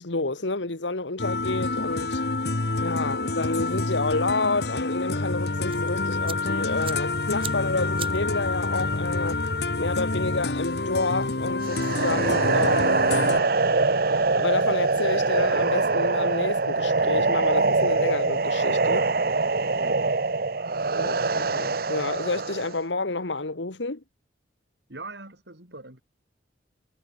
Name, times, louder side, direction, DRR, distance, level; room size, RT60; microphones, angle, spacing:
voice 1, 0.0-2.2 2.8-9.4 9.8-13.6 14.4-19.1 20.9-24.0, left 3 dB, 85° left, 1.8 m, -29 dB
sound 1, 1.2-13.4, left 2 dB, 60° left, 1.5 m, -27 dB
sound 2, 5.6-12.1, right 8 dB, 30° right, 4.0 m, -45 dB
sound 3, 11.6-22.8, right 3 dB, 55° right, 1.0 m, -23 dB
voice 2, 19.8-20.2 24.9-26.0, right 2 dB, 70° right, 5.3 m, -42 dB
head